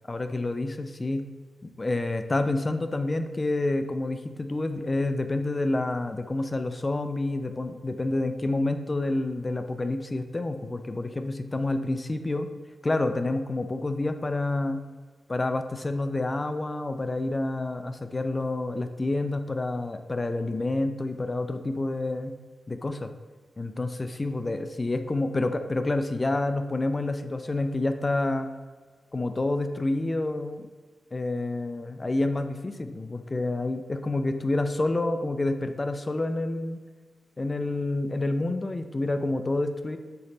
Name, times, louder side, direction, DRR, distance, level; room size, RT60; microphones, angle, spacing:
voice 1, 0.1-1.3 1.8-12.5 12.8-14.8 15.3-22.3 22.7-23.1 23.6-28.5 29.1-30.6 31.1-36.8 37.4-40.0, left 2 dB, 35° left, 8 dB, 0.5 m, -28 dB
6.9 x 3.2 x 5.1 m, 1.4 s
cardioid pair, 55°, 0 cm